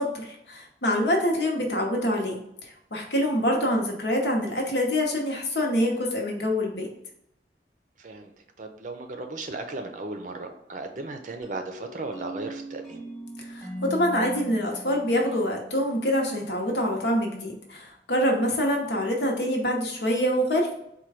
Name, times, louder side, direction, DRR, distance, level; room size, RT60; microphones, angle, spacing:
voice 1, 0.0-6.9 13.4-20.7, equal, 75° left, 1 dB, 0.9 m, -26 dB
voice 2, 8.0-8.3 8.6-13.0, right 2 dB, 45° right, 5 dB, 0.5 m, -36 dB
sound 1, 11.4-16.1, equal, ahead, 0.9 m, -40 dB
4.3 x 2.3 x 4.7 m, 0.77 s
head